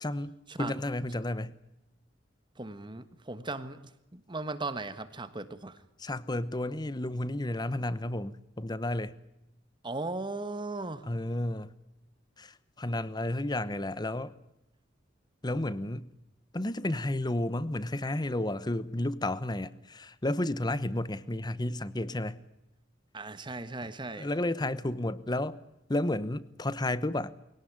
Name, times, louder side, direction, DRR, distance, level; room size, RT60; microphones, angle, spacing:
voice 1, 0.0-1.5 6.0-9.2 11.1-11.7 12.4-14.3 15.4-16.1 16.5-22.4 24.2-25.6 25.9-27.3, left 1 dB, 20° left, 0.9 m, -32 dB
voice 2, 2.6-5.8 9.8-11.1 23.1-24.3, right 2 dB, 25° right, 1.4 m, -37 dB
22.0 x 18.0 x 9.4 m
head